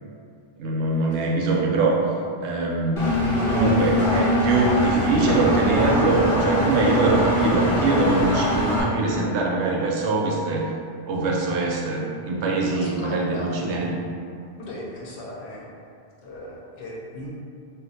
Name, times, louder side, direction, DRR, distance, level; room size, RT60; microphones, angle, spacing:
voice 1, 0.6-2.0 2.4-3.1 3.4-10.6 11.1-14.0, right 2 dB, 80° right, -2 dB, 0.9 m, -23 dB
Engine, 3.0-8.8, equal, 35° left, 0.7 m, -22 dB
voice 2, 12.7-13.6 14.6-15.6 16.2-17.3, left 1 dB, 80° left, -4 dB, 0.9 m, -37 dB
2.5 x 2.1 x 3.9 m, 2.4 s
omnidirectional pair, 1.1 m